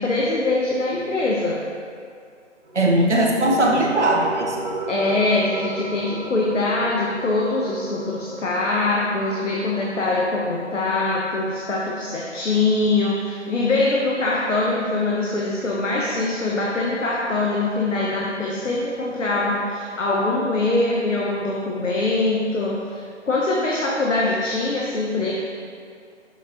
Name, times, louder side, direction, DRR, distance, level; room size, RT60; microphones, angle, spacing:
voice 1, 0.0-1.6 4.9-25.3, left 2 dB, 90° left, -3 dB, 1.1 m, -23 dB
sound 1, 2.6-13.7, right 2 dB, 50° right, 1.2 m, -35 dB
voice 2, 2.7-4.6, right 1 dB, 70° right, -1 dB, 1.3 m, -19 dB
7.3 x 5.8 x 3.0 m, 2.3 s
figure-of-eight pair, 165°, 36 cm